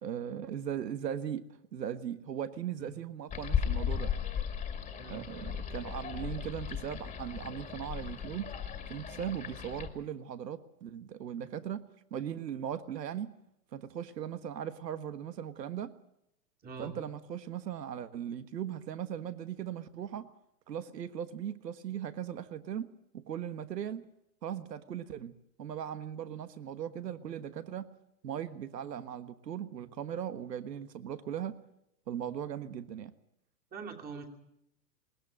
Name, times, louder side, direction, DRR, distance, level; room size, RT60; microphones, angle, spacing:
voice 1, 0.0-1.4 1.7-4.1 5.1-8.5 8.9-11.8 12.1-13.3 13.7-15.9 16.8-20.3 20.7-22.9 23.1-24.0 24.4-25.3 25.6-27.9 28.2-31.5 32.1-33.1, right 9 dB, 85° right, 13 dB, 1.5 m, -38 dB
sound 1, 3.3-9.9, left 8 dB, 15° left, 2.1 m, -36 dB
voice 2, 16.6-17.0 33.7-34.2, right 4 dB, 20° right, 2 dB, 2.9 m, -43 dB
20.5 x 19.5 x 7.5 m, 0.80 s
hypercardioid pair, 140°, 48 cm